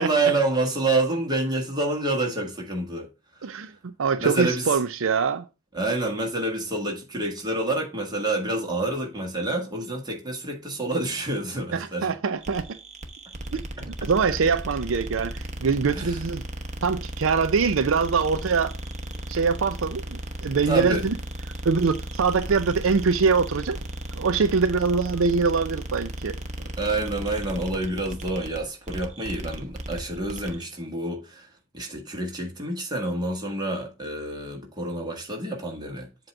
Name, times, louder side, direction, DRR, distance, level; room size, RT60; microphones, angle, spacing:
voice 1, 0.0-3.1 4.2-4.7 5.7-12.1 15.9-16.2 20.7-21.0 26.8-31.5 31.7-36.1, right 2 dB, 20° right, 1.9 m, -28 dB
voice 2, 3.4-5.4 11.7-12.6 13.5-16.4 16.8-18.7 19.3-21.1 21.6-23.8 24.2-26.4, right 5 dB, 70° right, 0.5 m, -24 dB
sound 1, 12.4-30.6, right 1 dB, 35° right, 0.9 m, -35 dB
7.7 x 3.0 x 6.0 m
head